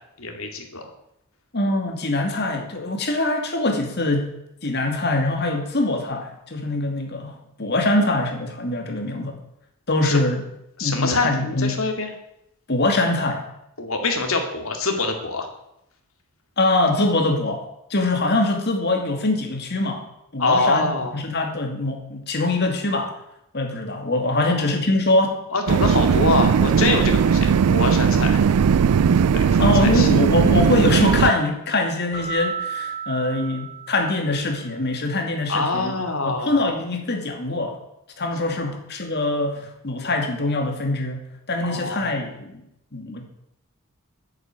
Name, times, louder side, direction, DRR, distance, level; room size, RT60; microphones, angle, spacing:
voice 1, 0.2-0.9 10.0-10.2 10.8-12.1 13.8-15.5 20.4-21.2 24.4-24.7 25.5-28.4 29.3-30.1 35.5-36.6 38.6-38.7 41.6-42.2, left 3 dB, 65° left, 4 dB, 2.4 m, -25 dB
voice 2, 1.5-9.4 9.9-10.4 10.8-11.7 12.7-13.5 16.6-17.6 17.9-20.0 20.3-23.2 23.5-25.4 29.6-35.9 36.2-37.7 38.2-41.2 41.5-42.6 42.9-43.3, left 2 dB, 50° left, 4 dB, 2.4 m, -23 dB
sound 1, 25.7-31.3, right 6 dB, 85° right, 0.4 m, -18 dB
Keyboard (musical), 32.1-34.5, right 6 dB, 30° left, 4.9 m, -33 dB
10.5 x 8.0 x 8.9 m, 0.82 s
head